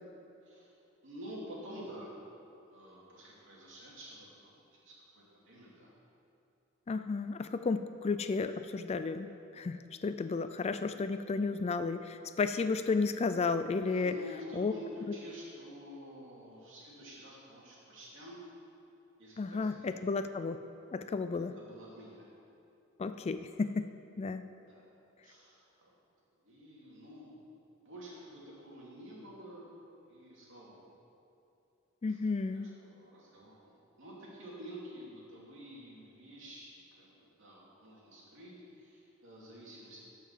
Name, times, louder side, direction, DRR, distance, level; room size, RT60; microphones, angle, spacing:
voice 1, 1.0-2.2 2.7-5.9 13.9-18.4 19.2-20.0 21.5-22.3 24.6-24.9 25.2-26.0 26.4-27.4 27.8-29.7 30.0-30.9 32.1-32.2 32.5-40.0, equal, 65° right, -5 dB, 3.0 m, -49 dB
voice 2, 6.9-14.1 14.5-14.7 19.4-20.6 20.9-21.5 23.0-23.9 24.2-24.4 32.0-32.7, left 4 dB, 30° left, 10 dB, 0.3 m, -33 dB
12.0 x 5.7 x 7.3 m, 2.8 s
head